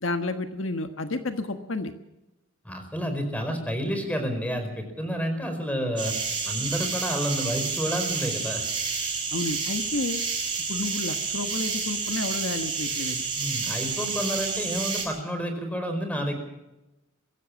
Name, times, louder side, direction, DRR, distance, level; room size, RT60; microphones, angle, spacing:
voice 1, 0.0-1.9 9.3-10.2 10.7-13.2, left 2 dB, 70° left, 7 dB, 1.4 m, -31 dB
voice 2, 2.6-6.1 6.4-8.6 13.4-16.4, equal, 5° left, 6 dB, 4.9 m, -29 dB
sound 1, 6.0-15.0, right 5 dB, 25° right, 7.4 m, -30 dB
23.5 x 16.0 x 7.2 m, 0.97 s
head